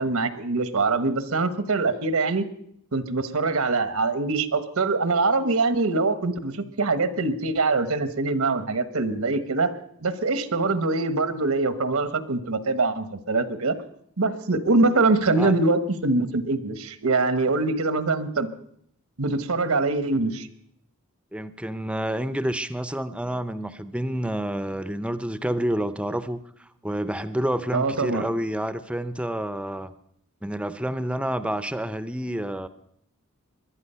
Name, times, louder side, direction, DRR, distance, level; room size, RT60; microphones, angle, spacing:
voice 1, 0.0-2.4 2.9-9.7 10.0-13.8 14.2-18.5 19.2-20.5 27.7-28.3, right 3 dB, 80° right, 12 dB, 1.1 m, -23 dB
voice 2, 21.3-29.9 30.4-32.7, right 1 dB, 5° right, 13 dB, 0.6 m, -29 dB
22.0 x 11.5 x 5.6 m, 0.71 s
head